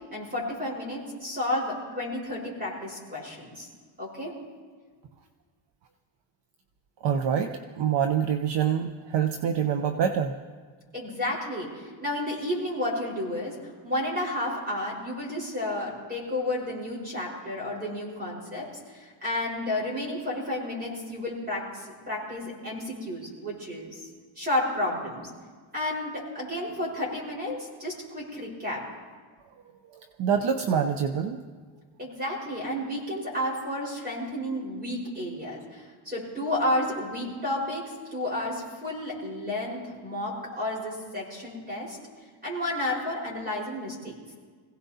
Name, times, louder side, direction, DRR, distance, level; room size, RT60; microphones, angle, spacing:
voice 1, 0.1-3.7 4.0-4.3 10.9-13.5 13.8-24.0 24.4-25.3 25.7-28.8 32.0-42.0 42.4-44.1, left 1 dB, 20° right, -3 dB, 4.6 m, -31 dB
voice 2, 7.0-10.3 29.9-31.4, right 8 dB, 60° right, 6 dB, 0.8 m, -26 dB
25.5 x 16.5 x 2.8 m, 1.5 s
cardioid pair, 170°, 47 cm